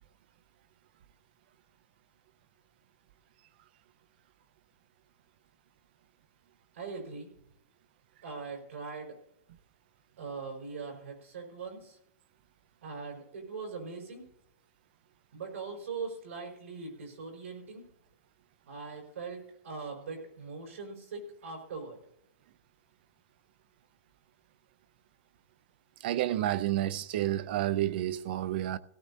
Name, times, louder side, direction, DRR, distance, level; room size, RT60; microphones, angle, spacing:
voice 1, 6.7-7.3 8.2-9.2 10.2-12.0 12.8-14.2 15.3-17.8 18.7-22.0, right 4 dB, 90° right, 4.9 m, -41 dB
voice 2, 26.0-28.8, right 13 dB, 45° right, 0.5 m, -30 dB
17.0 x 15.0 x 2.8 m
hypercardioid pair, 165°, 7 cm